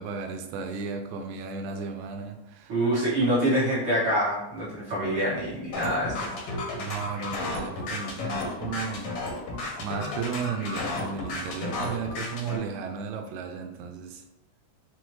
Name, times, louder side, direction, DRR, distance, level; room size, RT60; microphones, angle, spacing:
voice 1, 0.0-2.7 6.8-9.2 9.8-14.2, right 5 dB, 90° right, 4 dB, 2.0 m, -34 dB
voice 2, 2.7-6.3, right 1 dB, 55° right, -7 dB, 1.6 m, -25 dB
sound 1, 5.7-12.6, left 2 dB, 70° left, 1.5 m, -33 dB
5.8 x 2.1 x 3.1 m, 0.87 s
omnidirectional pair, 3.3 m